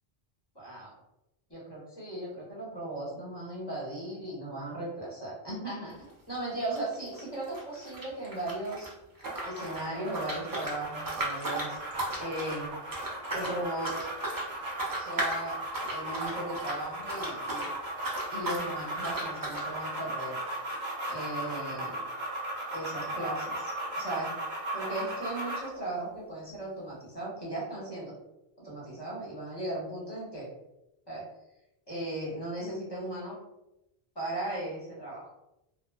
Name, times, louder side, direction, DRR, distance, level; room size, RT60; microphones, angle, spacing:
voice 1, 0.5-0.9 1.5-6.0 6.3-8.9 9.4-11.8 12.2-12.7 13.3-14.0 14.9-15.6 15.9-17.7 18.3-20.4 21.1-22.0 22.7-23.7 24.0-24.3 24.7-28.1 28.6-30.5 31.1-31.3 31.9-33.4 34.1-35.3, right 1 dB, 25° left, -7 dB, 1.0 m, -37 dB
sound 1, 5.9-6.1 6.3-8.9 9.2-17.7 18.0-18.7 19.0-19.7, right 2 dB, 30° right, 0.4 m, -36 dB
sound 2, 9.3-25.8, right 1 dB, 75° right, 1.0 m, -37 dB
3.2 x 2.4 x 2.3 m, 0.90 s
omnidirectional pair, 1.1 m